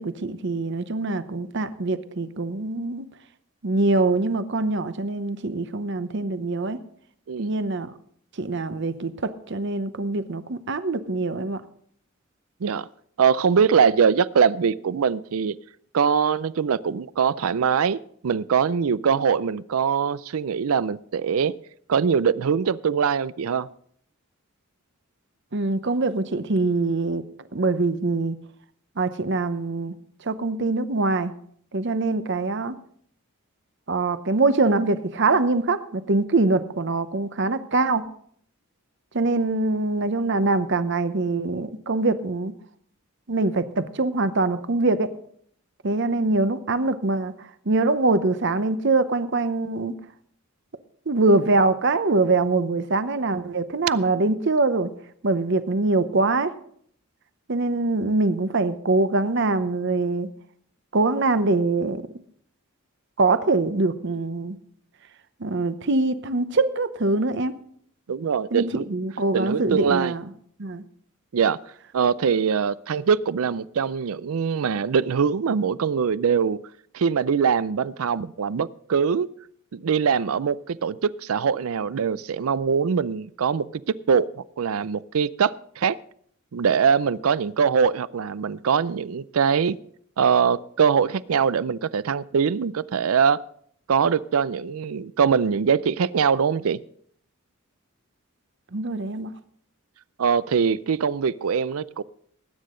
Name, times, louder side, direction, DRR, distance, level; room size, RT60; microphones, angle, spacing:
voice 1, 0.0-3.1 3.6-6.8 7.4-7.9 8.4-11.6 25.5-27.2 27.5-28.4 29.0-29.9 30.2-31.3 31.7-32.7 33.9-38.0 39.1-42.5 43.3-45.1 45.8-47.3 47.7-49.9 51.1-54.9 55.2-56.5 57.5-60.3 60.9-62.0 63.2-64.6 65.4-67.5 68.5-70.3 70.6-70.8 98.7-99.3, right 3 dB, 55° right, 12 dB, 0.8 m, -23 dB
voice 2, 13.2-15.5 15.9-18.0 18.2-21.5 21.9-23.7 68.1-68.8 69.3-70.1 71.3-71.6 71.9-76.6 76.9-79.3 79.7-84.3 84.6-86.0 86.5-89.8 90.2-93.4 93.9-96.8 100.2-102.0, right 6 dB, 80° right, 19 dB, 0.5 m, -22 dB
19.5 x 9.5 x 3.8 m, 0.63 s
head